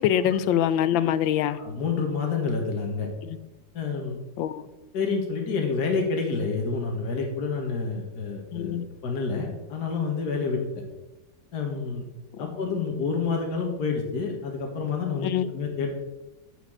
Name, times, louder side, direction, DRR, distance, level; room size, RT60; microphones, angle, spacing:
voice 1, 0.0-1.6 4.4-4.7 8.5-8.8 12.4-12.5 15.2-15.5, left 10 dB, 80° left, 14 dB, 1.4 m, -24 dB
voice 2, 1.5-3.1 3.7-4.2 4.9-10.6 11.5-12.1 12.4-15.9, left 4 dB, 55° left, 1 dB, 1.9 m, -28 dB
9.1 x 5.0 x 7.7 m, 1.1 s
omnidirectional pair, 2.1 m